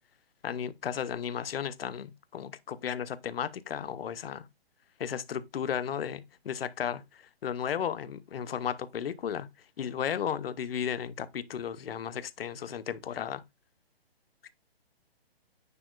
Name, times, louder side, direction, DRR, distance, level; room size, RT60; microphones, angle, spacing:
voice 1, 0.4-4.5 5.0-9.5 9.8-13.4, left 8 dB, 65° left, 0.8 m, -34 dB
9.6 x 4.2 x 2.4 m
hypercardioid pair, 150°, 31 cm